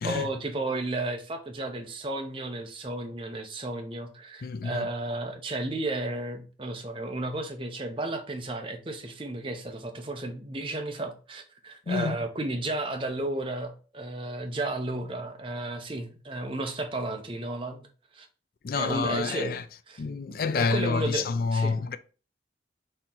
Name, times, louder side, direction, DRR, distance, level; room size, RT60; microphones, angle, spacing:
voice 1, 0.0-17.9 18.1-18.3 18.7-19.6 19.9-20.0 20.6-21.8, right 2 dB, 30° right, 0.7 m, -33 dB
voice 2, 4.4-4.9 11.9-12.2 18.6-19.6 20.0-22.0, left 4 dB, 50° left, 0.3 m, -28 dB
4.3 x 2.8 x 3.7 m
head